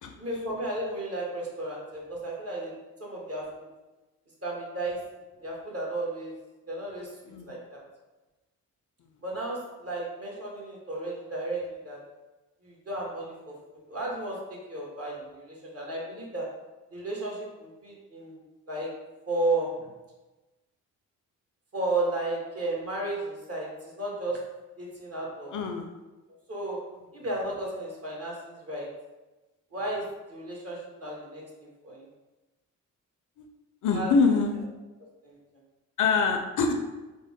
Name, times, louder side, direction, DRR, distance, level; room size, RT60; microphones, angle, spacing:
voice 1, 0.2-2.7 3.0-3.5 4.4-5.0 5.4-6.3 6.7-7.1 7.4-7.8 9.2-12.0 12.6-13.5 13.9-14.4 14.7-16.5 16.9-18.4 18.7-18.9 19.3-19.7 21.7-24.4 24.8-25.5 26.5-26.8 27.1-28.9 29.7-32.1 33.9-34.1 35.2-35.4, right 2 dB, 40° right, -3 dB, 1.4 m, -33 dB
voice 2, 25.5-25.9 33.4-33.5 33.8-34.7 36.0-36.7, left 4 dB, 55° left, 5 dB, 0.5 m, -24 dB
3.5 x 2.1 x 3.6 m, 1.1 s
supercardioid pair, 50°, 38 cm